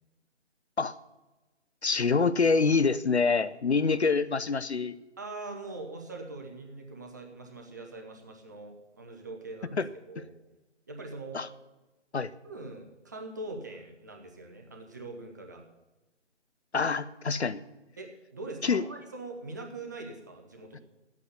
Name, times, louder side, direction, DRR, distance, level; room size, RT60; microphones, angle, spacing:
voice 1, 1.8-5.0 9.7-9.9 11.3-11.5 12.1-12.3 16.7-17.6 18.6-18.8, left 4 dB, 65° left, 15 dB, 0.7 m, -26 dB
voice 2, 5.2-10.3 10.9-11.4 12.4-15.6 18.0-20.8, right 2 dB, 15° right, 2 dB, 0.9 m, -42 dB
10.0 x 8.5 x 9.7 m, 1.1 s
figure-of-eight pair, 150°, 36 cm